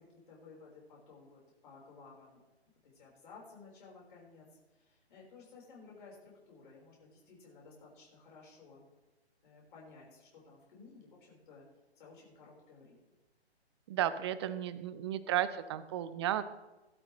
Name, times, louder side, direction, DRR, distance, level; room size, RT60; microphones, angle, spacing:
voice 1, 0.0-2.4 2.8-4.5 4.7-8.8 9.4-11.6 11.9-13.0, left 4 dB, 50° left, -3 dB, 4.5 m, -56 dB
voice 2, 13.9-16.4, right 11 dB, 25° right, 13 dB, 0.6 m, -33 dB
17.5 x 12.0 x 3.2 m, 1.1 s
figure-of-eight pair, 135°, 33 cm